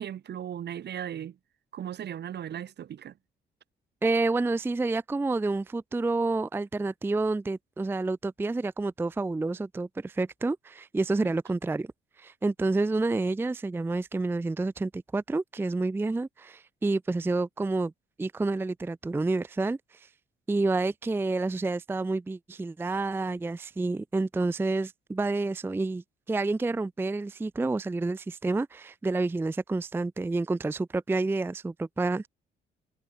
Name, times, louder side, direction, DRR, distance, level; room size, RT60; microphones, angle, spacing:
voice 1, 0.0-1.4 1.7-3.1 11.2-11.3, right 10 dB, 60° right, 1.4 m, -37 dB
voice 2, 4.0-11.9 12.2-17.9 18.2-20.1 20.5-32.3, right 3 dB, 10° right, 0.4 m, -29 dB
cardioid pair, 90°, 20 cm